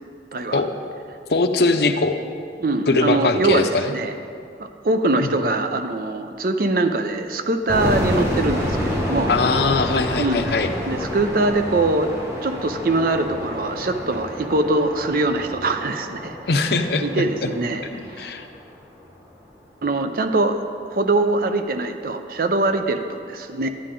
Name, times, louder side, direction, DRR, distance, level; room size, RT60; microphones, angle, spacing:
voice 1, 0.3-0.6 2.6-4.1 4.6-9.3 10.2-10.5 10.9-12.1 12.4-16.4 17.0-17.9 18.2-18.3 19.8-20.6 20.9-23.7, right 2 dB, 50° right, 8 dB, 0.6 m, -22 dB
voice 2, 1.3-2.2 2.9-3.9 5.2-5.3 9.3-10.7 16.5-17.1 17.4-17.5 17.9-18.5, left 3 dB, 65° left, 7 dB, 0.6 m, -21 dB
sound 1, 7.7-18.6, equal, 15° right, 1.2 m, -28 dB
11.5 x 9.5 x 3.8 m, 2.5 s
head